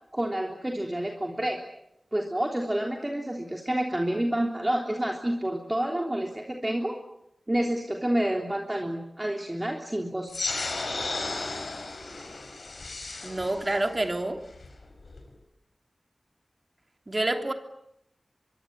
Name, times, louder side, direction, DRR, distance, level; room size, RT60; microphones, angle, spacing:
voice 1, 0.1-1.6 2.1-7.0 7.5-10.3, right 1 dB, 20° right, 1 dB, 3.4 m, -29 dB
sound 1, 10.3-15.3, left 3 dB, 70° left, 5.7 m, -35 dB
voice 2, 13.2-14.4 17.1-17.5, right 2 dB, 35° right, 5 dB, 3.0 m, -27 dB
24.5 x 23.0 x 8.9 m, 0.81 s
wide cardioid pair, 65°, 0 cm